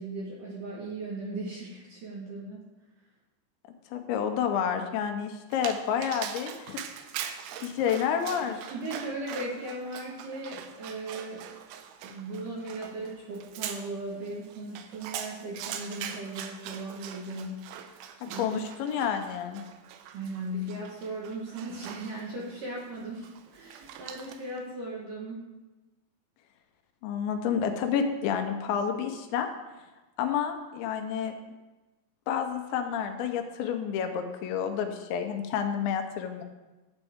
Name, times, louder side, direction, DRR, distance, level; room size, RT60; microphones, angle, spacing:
voice 1, 0.0-2.7 8.7-11.5 12.0-17.6 18.3-18.6 20.1-25.4, right 2 dB, 60° right, -4 dB, 2.3 m, -37 dB
voice 2, 3.9-6.8 7.6-8.6 18.3-19.6 27.0-29.5 30.2-31.3 32.3-36.4, left 7 dB, 80° left, 5 dB, 3.0 m, -29 dB
Dog, 5.5-24.6, right 9 dB, 85° right, 2.5 m, -42 dB
12.0 x 8.1 x 3.6 m, 1.1 s
omnidirectional pair, 5.3 m